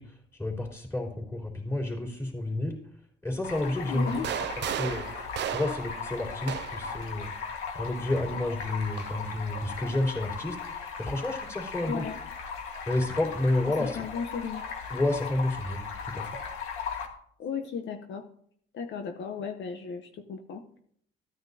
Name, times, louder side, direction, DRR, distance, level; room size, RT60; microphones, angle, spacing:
voice 1, 0.0-2.8 3.2-4.2 4.6-5.1 5.5-7.3 7.7-12.1 12.9-14.0 14.9-16.3, left 1 dB, 15° left, -1 dB, 3.5 m, -30 dB
Stream, 3.4-17.1, left 6 dB, 90° left, 1.6 m, -38 dB
voice 2, 3.9-4.3 11.9-12.2 13.8-14.7 17.4-18.2 18.7-20.6, left 6 dB, 65° left, 5 dB, 0.9 m, -35 dB
sound 1, 4.1-7.0 8.1-9.2, right 11 dB, 60° right, 0.4 m, -35 dB
14.5 x 9.5 x 2.8 m, 0.64 s
cardioid pair, 90°, 20 cm